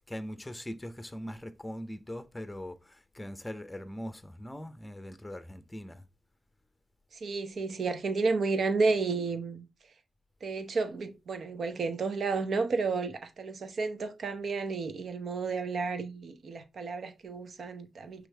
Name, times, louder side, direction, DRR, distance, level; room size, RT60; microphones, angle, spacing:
voice 1, 0.1-6.0, equal, 15° left, 0.7 m, -41 dB
voice 2, 7.2-9.6 10.4-18.3, right 4 dB, 65° right, 0.7 m, -31 dB
4.9 x 3.1 x 3.2 m
supercardioid pair, 50°, 0 cm